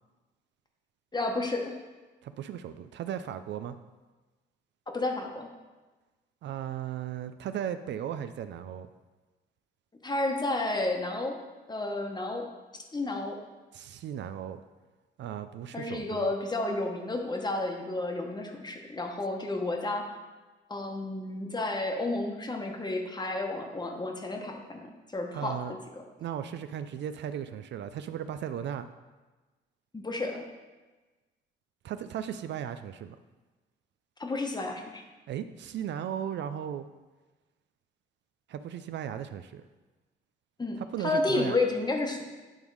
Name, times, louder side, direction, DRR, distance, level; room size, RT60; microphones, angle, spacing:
voice 1, 1.1-1.7 4.9-5.5 10.0-11.3 11.7-12.4 12.7-13.4 15.7-20.2 20.7-24.9 25.1-25.6 25.9-26.0 29.9-30.4 34.2-35.0 40.6-42.2, left 2 dB, 20° left, 2 dB, 1.1 m, -31 dB
voice 2, 2.2-3.8 6.4-8.9 13.7-14.6 15.2-16.3 25.3-25.7 26.2-28.9 31.8-33.2 35.3-36.9 38.5-39.6 40.7-41.6, right 9 dB, 65° right, 11 dB, 0.4 m, -36 dB
9.0 x 3.6 x 4.7 m, 1.2 s
cardioid pair, 90°, 20 cm